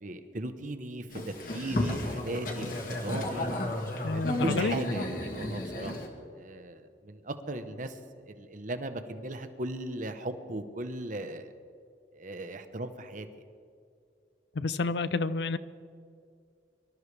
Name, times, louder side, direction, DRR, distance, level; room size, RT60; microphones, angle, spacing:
voice 1, 0.0-3.5 4.0-6.0 6.3-11.5 12.1-13.3, right 1 dB, 50° right, 9 dB, 1.0 m, -37 dB
Boat Water vehicle, 1.1-6.1, left 1 dB, 55° left, 2.0 m, -33 dB
voice 2, 4.0-4.8 14.6-15.6, left 3 dB, 70° left, 15 dB, 0.5 m, -29 dB
24.5 x 12.5 x 3.3 m, 2.3 s
head